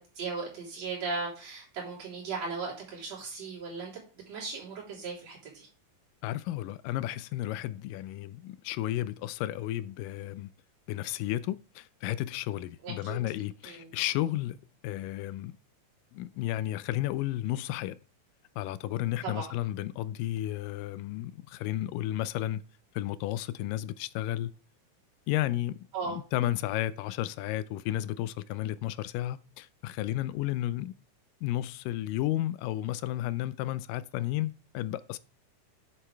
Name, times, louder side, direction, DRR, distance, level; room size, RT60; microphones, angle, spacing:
voice 1, 0.2-3.9 4.3-5.7 12.8-13.2 13.6-13.9 19.2-19.5 25.9-26.2, right 4 dB, 50° right, 4.8 m, -37 dB
voice 2, 6.2-10.5 10.9-14.6 14.8-15.5 16.1-18.0 18.6-22.6 23.0-24.5 25.3-25.8 26.0-30.9 31.4-35.2, left 14 dB, 90° left, 2.2 m, -32 dB
8.7 x 7.5 x 3.4 m
omnidirectional pair, 3.8 m